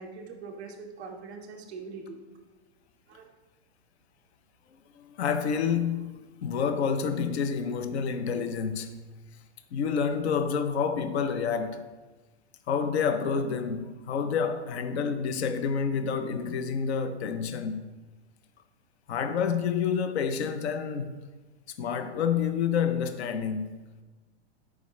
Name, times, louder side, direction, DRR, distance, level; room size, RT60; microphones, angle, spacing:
voice 1, 0.0-2.2 3.1-3.2, right 4 dB, 10° right, 0.3 m, -42 dB
voice 2, 4.7-9.0 9.7-11.9 12.7-17.9 19.1-21.2 21.8-23.8, left 6 dB, 65° left, 0.7 m, -29 dB
12.0 x 4.9 x 3.1 m
supercardioid pair, 175°, 35 cm